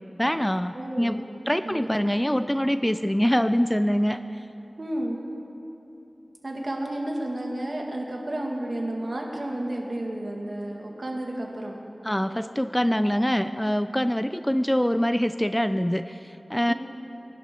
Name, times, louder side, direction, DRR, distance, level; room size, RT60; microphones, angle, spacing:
voice 1, 0.2-4.5 12.0-16.7, equal, 10° left, 11 dB, 0.4 m, -24 dB
voice 2, 0.7-1.2 1.7-2.2 4.8-5.2 6.4-11.8 16.7-16.8, right 1 dB, 55° right, -1 dB, 2.0 m, -32 dB
22.5 x 11.5 x 3.8 m, 3.0 s
wide cardioid pair, 55°, 0 cm